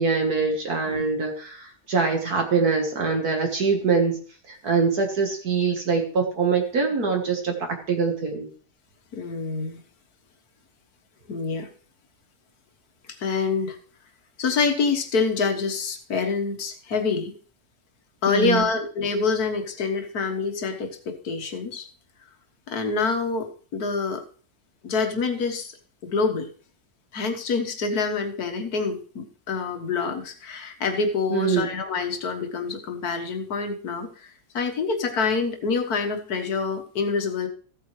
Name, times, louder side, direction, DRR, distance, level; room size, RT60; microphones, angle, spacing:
voice 1, 0.0-4.2 4.5-8.5 18.3-18.7 31.3-31.7, right 5 dB, 60° right, 3 dB, 2.0 m, -24 dB
voice 2, 9.1-9.8 11.3-11.7 13.2-13.8 14.4-17.3 18.2-21.9 22.7-24.2 24.8-25.7 26.0-26.5 27.1-34.1 34.5-37.5, left 4 dB, 60° left, 5 dB, 1.8 m, -26 dB
15.5 x 8.5 x 3.2 m, 0.42 s
omnidirectional pair, 1.9 m